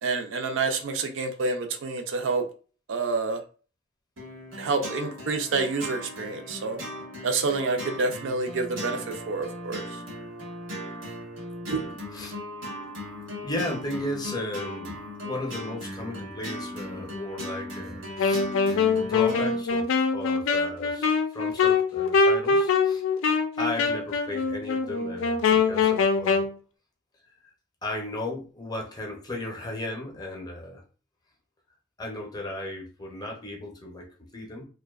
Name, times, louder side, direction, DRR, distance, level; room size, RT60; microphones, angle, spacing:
voice 1, 0.0-2.5 2.9-3.4 4.6-6.8 7.2-10.0 11.7-11.8, right 3 dB, 70° right, 6 dB, 0.4 m, -28 dB
sound 1, 4.2-19.6, equal, 85° right, 1.1 m, -38 dB
voice 2, 13.4-18.5 19.0-19.8 20.1-23.0 23.6-26.5 27.8-30.8 32.0-34.1 34.3-34.7, left 1 dB, 20° left, 0 dB, 0.5 m, -35 dB
Wind instrument woodwind instrument, 18.2-26.5, left 5 dB, 80° left, 0.4 m, -23 dB
2.5 x 2.2 x 2.3 m, 0.38 s
head